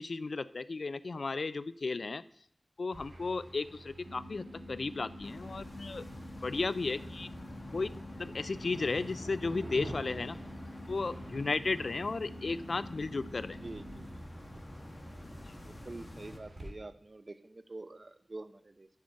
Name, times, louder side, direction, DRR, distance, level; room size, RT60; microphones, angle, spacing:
voice 1, 0.0-2.2 2.8-6.0 6.4-7.3 7.7-7.9 8.2-10.4 10.9-13.6, left 3 dB, 75° left, 14 dB, 0.3 m, -34 dB
sound 1, 2.9-16.7, right 1 dB, 70° right, 2.3 m, -49 dB
sound 2, 4.0-14.1, left 1 dB, 85° right, 3.2 m, -49 dB
sound 3, 5.2-16.4, left 1 dB, 35° left, 0.7 m, -49 dB
voice 2, 13.6-14.1 14.6-14.8 15.6-18.9, right 2 dB, 50° right, 11 dB, 0.5 m, -47 dB
8.3 x 6.6 x 4.6 m, 0.65 s
wide cardioid pair, 65°, 0 cm